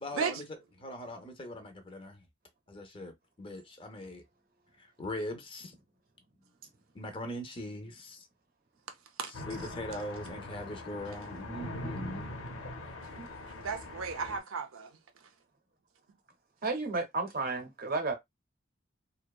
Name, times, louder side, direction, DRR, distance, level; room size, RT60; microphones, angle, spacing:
voice 1, 0.0-2.2 2.7-4.2 4.8-5.8 6.9-8.3 9.2-12.4, left 1 dB, 25° left, 0.4 m, -41 dB
sound 1, 9.3-14.4, left 1 dB, 90° left, 0.7 m, -42 dB
voice 2, 13.6-14.9, right 5 dB, 85° right, 0.5 m, -34 dB
voice 3, 16.6-18.1, right 3 dB, 45° right, 0.6 m, -32 dB
2.6 x 2.1 x 2.2 m
head